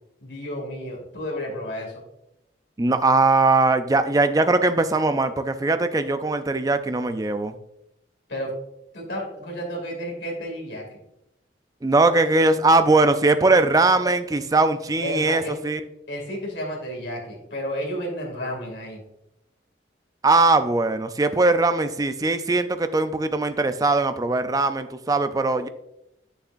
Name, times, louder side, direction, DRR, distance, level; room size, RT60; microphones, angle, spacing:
voice 1, 0.2-2.0 8.3-8.5 8.9-11.0 15.0-15.6 16.1-19.0, equal, 80° left, -1 dB, 2.5 m, -32 dB
voice 2, 2.8-7.5 11.8-15.8 20.2-25.7, right 3 dB, 20° right, 10 dB, 0.4 m, -20 dB
8.3 x 6.6 x 2.6 m, 0.83 s
head